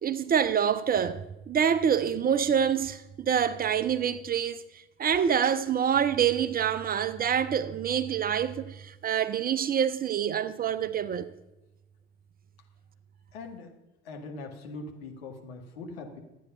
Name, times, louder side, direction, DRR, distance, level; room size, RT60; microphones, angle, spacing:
voice 1, 0.0-4.6 5.0-11.3, right 8 dB, 25° right, 0.6 m, -26 dB
voice 2, 13.3-13.7 14.0-16.2, left 3 dB, 65° left, 2.0 m, -41 dB
12.5 x 9.2 x 5.6 m
figure-of-eight pair, 60°, 33 cm